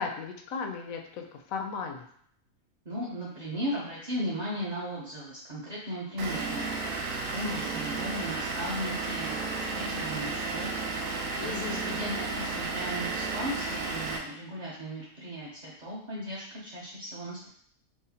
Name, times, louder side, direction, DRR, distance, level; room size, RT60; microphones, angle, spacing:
voice 1, 0.0-2.1 11.4-12.0, left 5 dB, 75° left, 3 dB, 1.0 m, -36 dB
voice 2, 2.8-6.7 7.3-10.7 11.4-17.5, equal, 45° right, -8 dB, 0.6 m, -36 dB
Vehicle / Engine, 6.2-14.2, right 3 dB, 70° right, 1.0 m, -33 dB
4.9 x 2.1 x 2.7 m, 0.64 s
omnidirectional pair, 1.5 m